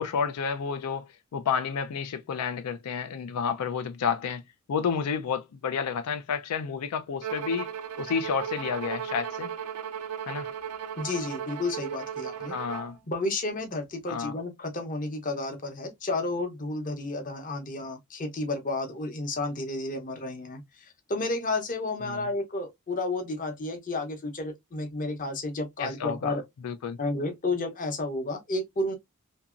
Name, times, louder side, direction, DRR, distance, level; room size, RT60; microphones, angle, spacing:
voice 1, 0.0-4.4 4.7-7.7 8.0-9.5 10.3-10.5 12.5-13.0 14.1-14.4 22.0-22.2 25.8-26.4 26.6-27.0, left 6 dB, 85° left, 0.4 m, -30 dB
Bowed string instrument, 7.2-13.0, right 8 dB, 80° right, 0.4 m, -36 dB
voice 2, 11.0-12.5 13.1-26.4 27.0-29.0, left 2 dB, 35° left, 0.7 m, -31 dB
2.8 x 2.6 x 2.4 m
head